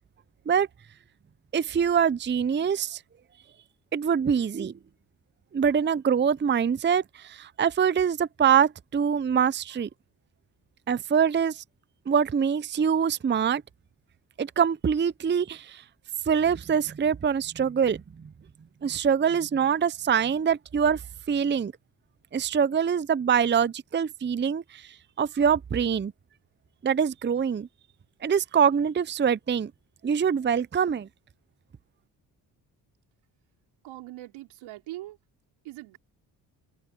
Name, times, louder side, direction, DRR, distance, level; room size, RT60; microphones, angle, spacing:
voice 1, 1.5-3.0 3.9-4.7 5.5-9.9 10.9-11.6 12.1-13.6 14.4-15.8 16.3-18.0 18.8-21.0 21.3-21.7 22.3-24.9 25.2-26.1 26.8-27.7 28.2-29.7 30.0-31.1, right 7 dB, 25° right, 0.6 m, -24 dB
voice 2, 33.8-35.2 35.6-36.0, right 16 dB, 85° right, 4.5 m, -41 dB
supercardioid pair, 50°, 46 cm